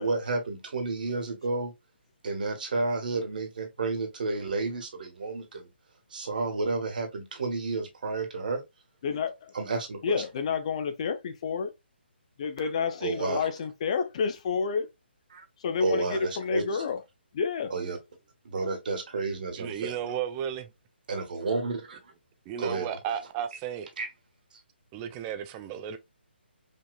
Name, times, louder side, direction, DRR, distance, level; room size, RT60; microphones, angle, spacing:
voice 1, 0.0-1.7 2.2-5.7 6.1-8.6 9.5-10.2 12.6-12.7 13.0-13.5 15.3-15.4 15.8-16.8 17.7-18.0 18.4-20.1 21.1-22.1 22.6-22.9 24.0-24.1, right 3 dB, 50° right, 1.2 m, -31 dB
voice 2, 9.0-9.5 10.0-11.7 12.4-14.9 15.6-17.0 17.3-17.7, left 5 dB, 35° left, 0.6 m, -29 dB
voice 3, 19.5-20.7 22.5-23.9 24.9-26.0, right 9 dB, 15° right, 0.3 m, -34 dB
5.2 x 2.7 x 2.3 m
figure-of-eight pair, 140°, 6 cm